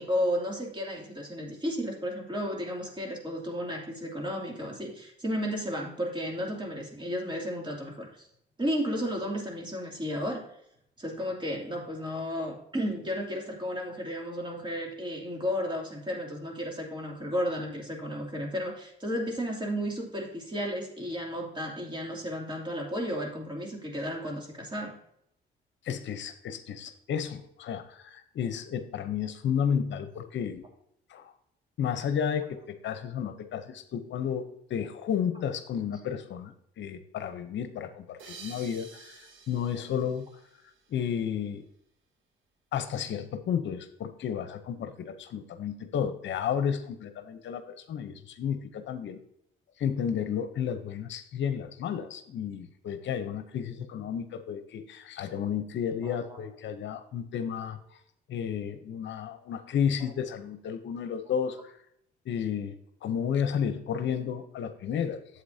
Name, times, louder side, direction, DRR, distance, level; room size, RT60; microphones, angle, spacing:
voice 1, 0.0-8.3 8.6-10.5 11.0-24.9 56.0-56.4, equal, 25° right, 0 dB, 2.6 m, -33 dB
voice 2, 25.8-30.6 31.1-31.3 31.8-40.3 40.9-41.6 42.7-49.2 49.8-58.0 58.3-61.8 62.3-65.2, left 8 dB, 70° left, 9 dB, 0.8 m, -32 dB
sound 1, 38.2-41.3, right 5 dB, 75° right, 1.3 m, -50 dB
8.3 x 7.9 x 2.7 m, 0.73 s
cardioid pair, 90°, 20 cm